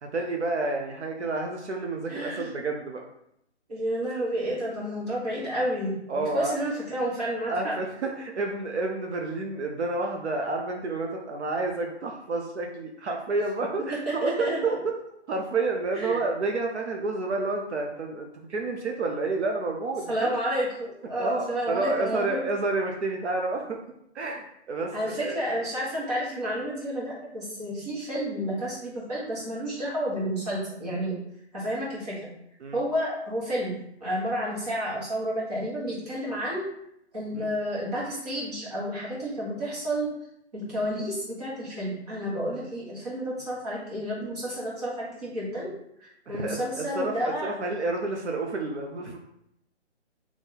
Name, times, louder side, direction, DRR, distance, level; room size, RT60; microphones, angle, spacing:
voice 1, 0.0-3.1 6.1-6.5 7.5-14.8 15.3-20.3 21.2-23.8 24.1-25.4 32.6-32.8 37.3-37.5 46.3-49.2, right 3 dB, 70° right, 2 dB, 0.7 m, -30 dB
voice 2, 2.1-2.5 3.7-7.8 13.9-14.8 15.9-16.2 20.1-22.4 24.9-31.2 31.5-32.3 32.7-36.7 37.1-40.1 40.5-45.7 46.0-47.5, equal, 35° right, -6 dB, 1.6 m, -30 dB
4.1 x 3.0 x 3.9 m, 0.77 s
hypercardioid pair, 175°, 35 cm